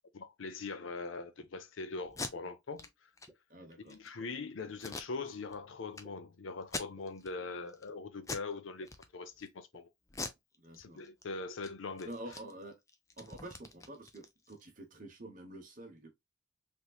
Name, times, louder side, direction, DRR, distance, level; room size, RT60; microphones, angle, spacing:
voice 1, 0.1-3.1 3.8-9.9 10.8-12.1, left 4 dB, 75° left, 0.6 m, -42 dB
sound 1, 1.4-1.5 2.3-2.4 3.3-3.4 4.2-4.3 5.1-5.2 6.0-6.1 7.0-7.1 7.9-8.0 8.8-8.9 9.7-9.8, equal, ahead, 0.8 m, -57 dB
Packing tape duct tape, 2.0-2.3 2.8-2.9 3.2-3.3 3.7-4.1 4.8-5.6 5.9-6.0 6.6-7.3 7.7-7.9 8.2-8.5 8.8-9.5 10.1-11.2 11.5-11.7 12.0-14.6, left 3 dB, 15° left, 0.4 m, -43 dB
voice 2, 3.5-4.0 10.6-11.0 12.0-12.8 13.2-16.1, right 1 dB, 40° right, 1.0 m, -48 dB
3.5 x 3.0 x 2.3 m
head